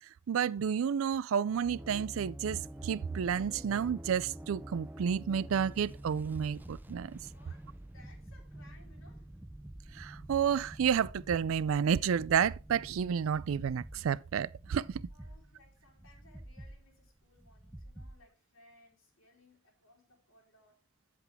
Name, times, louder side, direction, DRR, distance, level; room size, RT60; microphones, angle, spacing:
voice 1, 0.3-7.2 10.0-15.0, right 7 dB, 80° right, 0.4 m, -31 dB
sound 1, 1.6-18.3, right 1 dB, 10° right, 0.5 m, -48 dB
voice 2, 7.2-9.3 15.1-20.8, left 2 dB, 80° left, 3.4 m, -63 dB
8.1 x 7.6 x 3.5 m
head